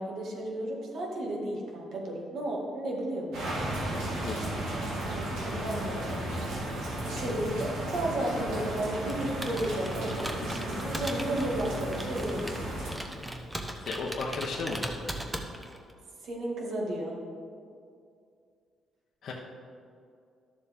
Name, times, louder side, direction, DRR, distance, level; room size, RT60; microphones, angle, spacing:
voice 1, 0.0-3.6 4.2-12.7 16.2-17.2, right 1 dB, 70° right, -1 dB, 1.9 m, -34 dB
sound 1, 3.3-12.9, right 1 dB, 90° right, 2.3 m, -34 dB
Computer keyboard, 9.0-15.9, right 1 dB, 10° right, 0.9 m, -39 dB
voice 2, 13.8-15.0 19.2-19.3, left 3 dB, 65° left, -2 dB, 0.9 m, -34 dB
12.5 x 7.0 x 3.6 m, 2.3 s
cardioid pair, 90°, 0 cm